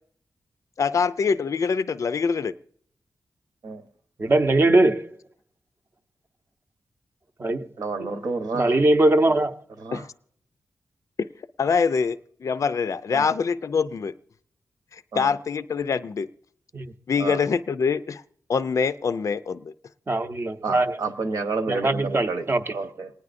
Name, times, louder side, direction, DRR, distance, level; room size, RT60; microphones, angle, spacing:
voice 1, 0.8-2.5 9.9-10.1 11.6-14.1 15.1-16.3 17.1-18.2 18.5-19.7, left 5 dB, 55° left, 0.4 m, -24 dB
voice 2, 4.2-5.1 7.4-7.7 8.0-8.1 8.5-9.5 16.7-16.9 20.1-21.0 21.7-22.7, right 2 dB, 35° right, 0.7 m, -21 dB
voice 3, 7.8-8.8 9.8-10.0 13.1-13.2 15.1-15.3 17.2-17.4 20.6-22.5 22.7-23.1, right 3 dB, 75° right, 1.1 m, -30 dB
28.5 x 9.6 x 2.6 m
wide cardioid pair, 95°, 7 cm